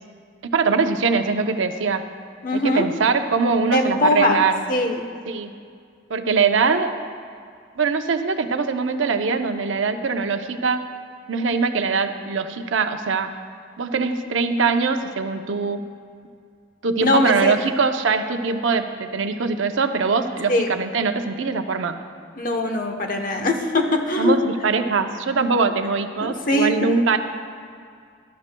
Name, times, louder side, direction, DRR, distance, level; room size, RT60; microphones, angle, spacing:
voice 1, 0.4-2.0 2.5-4.6 5.3-5.5 6.1-7.0 7.8-10.9 11.3-13.3 13.8-15.9 16.8-22.0 24.2-27.2, right 4 dB, 80° right, 7 dB, 0.6 m, -22 dB
voice 2, 2.4-2.9 3.7-4.4 4.7-5.0 17.0-17.6 20.5-20.7 22.4-24.4 26.2-27.0, left 1 dB, 45° left, 4 dB, 0.9 m, -21 dB
18.5 x 12.0 x 2.2 m, 2.2 s
head